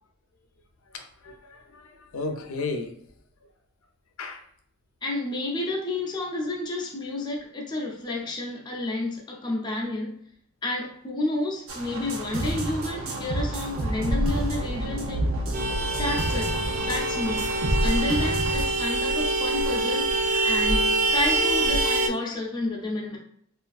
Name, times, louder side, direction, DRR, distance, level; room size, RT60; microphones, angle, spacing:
voice 1, 0.9-2.9 4.2-4.4 20.8-20.9, left 3 dB, 85° left, 5 dB, 0.5 m, -34 dB
voice 2, 5.0-10.1 10.6-15.3 16.0-17.5 17.8-20.1 20.4-23.2, left 2 dB, 20° left, -1 dB, 0.5 m, -30 dB
sound 1, 11.7-18.7, right 1 dB, 70° right, 0.7 m, -29 dB
Vehicle horn car horn honking, 15.5-22.1, right 2 dB, 40° right, 0.3 m, -25 dB
3.3 x 2.4 x 2.3 m, 0.66 s
head